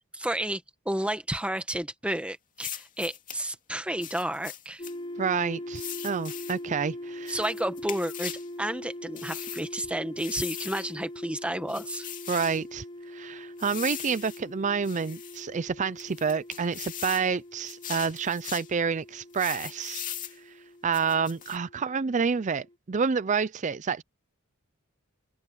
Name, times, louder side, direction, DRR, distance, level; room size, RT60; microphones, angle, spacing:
voice 1, 0.2-4.9 7.3-8.3 8.6-12.1, right 1 dB, 5° right, 1.5 m, -31 dB
sound 1, 2.6-3.4 4.0-4.9 5.7-6.6 7.3-8.5 9.2-9.7 10.2-10.9 11.7-12.6 13.6-14.4 14.8-15.4 16.0-17.3 17.7-18.7 19.3-20.4 20.9-21.6, left 10 dB, 40° left, 2.5 m, -39 dB
sound 2, 4.8-22.7, left 1 dB, 25° left, 0.9 m, -42 dB
voice 2, 5.2-7.4 12.3-20.0 20.4-24.0, right 5 dB, 35° right, 0.5 m, -29 dB
head